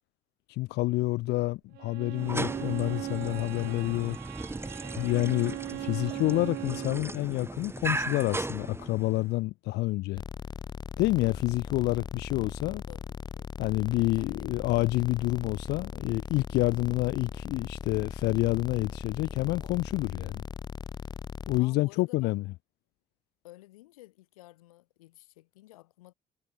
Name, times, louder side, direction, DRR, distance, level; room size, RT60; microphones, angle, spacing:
voice 1, 0.5-4.2 5.0-10.2 11.0-12.8 13.6-20.4 21.5-22.4, left 20 dB, 70° left, 1.2 m, -28 dB
Bowed string instrument, 1.7-7.1, right 18 dB, 65° right, 0.6 m, -39 dB
sound 1, 2.1-9.3, right 2 dB, 15° right, 1.8 m, -37 dB
sound 2, 10.2-21.6, left 5 dB, 25° left, 0.5 m, -39 dB
voice 2, 12.9-13.5 14.1-14.5 21.6-22.4 23.4-26.1, left 17 dB, 85° left, 2.8 m, -53 dB
hypercardioid pair, 55°, 18 cm